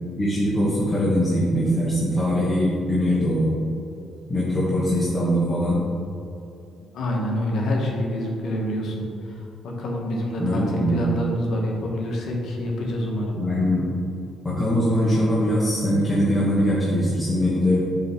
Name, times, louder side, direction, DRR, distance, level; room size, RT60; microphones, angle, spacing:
voice 1, 0.2-3.5 4.3-5.8 10.4-11.0 13.3-13.9 14.4-17.8, equal, 25° left, -8 dB, 1.5 m, -22 dB
voice 2, 6.9-13.4, left 1 dB, 70° left, -1 dB, 1.2 m, -27 dB
7.6 x 3.3 x 4.4 m, 2.6 s
cardioid pair, 90°, 0 cm